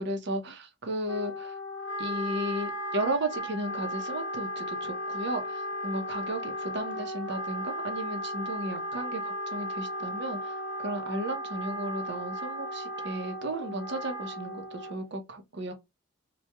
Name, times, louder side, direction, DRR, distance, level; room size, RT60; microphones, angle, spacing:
voice 1, 0.0-1.5 2.0-15.7, right 1 dB, 60° right, 0.7 m, -34 dB
Wind instrument woodwind instrument, 1.1-15.1, equal, 85° left, 0.6 m, -35 dB
2.9 x 2.3 x 2.2 m
head